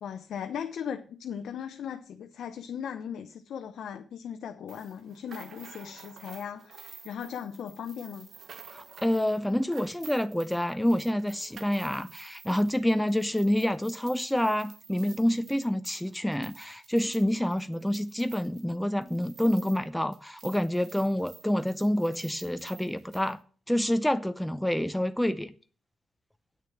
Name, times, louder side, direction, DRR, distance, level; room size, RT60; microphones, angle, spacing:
voice 1, 0.0-8.3, left 8 dB, 70° left, 0.8 m, -38 dB
sound 1, 4.7-19.9 20.1-23.3, right 6 dB, 60° right, 1.4 m, -51 dB
voice 2, 8.7-23.4 23.7-25.5, left 1 dB, 5° left, 0.7 m, -28 dB
8.9 x 6.5 x 7.1 m
supercardioid pair, 60°, 0 cm